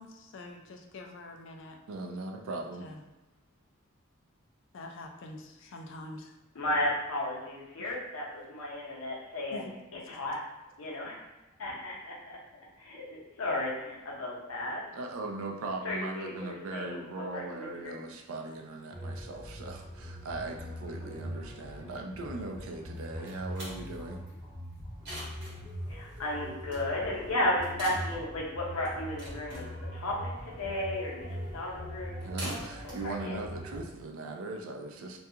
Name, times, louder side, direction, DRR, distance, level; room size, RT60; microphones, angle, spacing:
voice 1, 0.0-1.8 2.8-3.0 4.7-6.3 9.5-9.7, left 2 dB, 60° left, 3 dB, 0.3 m, -45 dB
voice 2, 1.9-2.9 14.9-24.2 32.2-35.2, right 2 dB, 75° right, 3 dB, 0.4 m, -39 dB
voice 3, 6.5-9.7 9.9-10.4 10.8-11.2 11.6-12.4 12.8-14.8 15.8-18.1 25.9-29.6 29.9-31.3 31.5-32.6 32.8-33.4, left 1 dB, 85° left, -4 dB, 0.7 m, -34 dB
sound 1, 18.9-33.8, equal, 25° right, 0.5 m, -42 dB
sound 2, 22.9-34.4, right 1 dB, 55° right, 1.0 m, -47 dB
2.3 x 2.3 x 2.7 m, 0.99 s
head